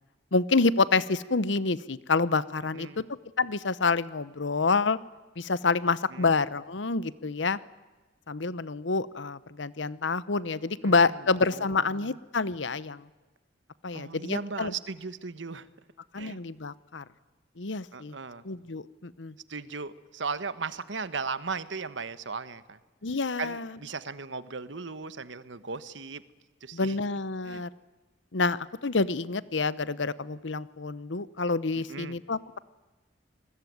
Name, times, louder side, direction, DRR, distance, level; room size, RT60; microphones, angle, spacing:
voice 1, 0.3-3.0 3.4-5.0 5.4-7.6 8.3-13.1 13.8-14.7 16.1-17.0 17.6-18.2 18.4-19.3 23.0-23.8 26.7-27.7 28.3-32.6, left 4 dB, 80° left, 17 dB, 0.9 m, -28 dB
voice 2, 10.8-12.2 13.9-15.7 16.2-16.4 17.9-18.4 19.5-22.8 23.4-26.2 26.6-27.0 27.4-27.6 31.9-32.2, right 4 dB, 80° right, 14 dB, 1.2 m, -37 dB
27.0 x 21.0 x 9.5 m, 1.2 s
head